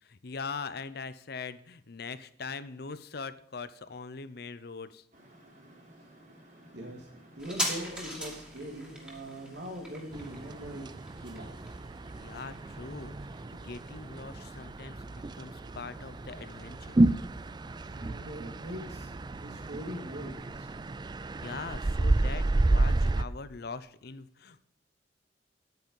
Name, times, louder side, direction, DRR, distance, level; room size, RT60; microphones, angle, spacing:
voice 1, 0.0-5.0 12.2-17.0 21.2-24.6, left 4 dB, 60° left, 14 dB, 0.7 m, -42 dB
sound 1, 5.1-20.3, right 1 dB, 45° right, 3.6 m, -55 dB
voice 2, 6.7-7.1 7.4-10.9 11.2-11.8 17.9-20.9, equal, 75° right, 1 dB, 2.5 m, -42 dB
sound 2, 7.4-14.5 14.8-14.9, equal, 5° right, 2.5 m, -40 dB
sound 3, 10.1-23.2, right 2 dB, 25° right, 0.4 m, -31 dB
9.9 x 9.2 x 5.4 m, 0.73 s
head